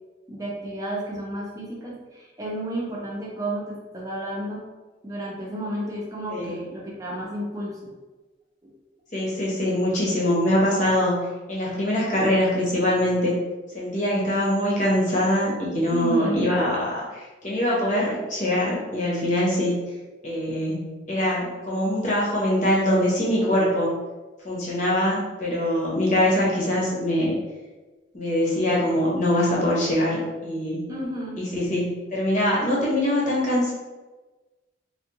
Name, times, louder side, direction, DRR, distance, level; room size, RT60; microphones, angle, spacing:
voice 1, 0.3-4.6 5.0-7.8 15.9-16.6 30.9-31.4, right 1 dB, 20° right, -4 dB, 0.7 m, -32 dB
voice 2, 9.1-13.3 13.7-19.8 20.2-23.9 24.4-27.3 28.1-30.8 31.4-33.7, left 1 dB, 40° left, -5 dB, 1.0 m, -23 dB
3.5 x 2.4 x 2.9 m, 1.2 s
head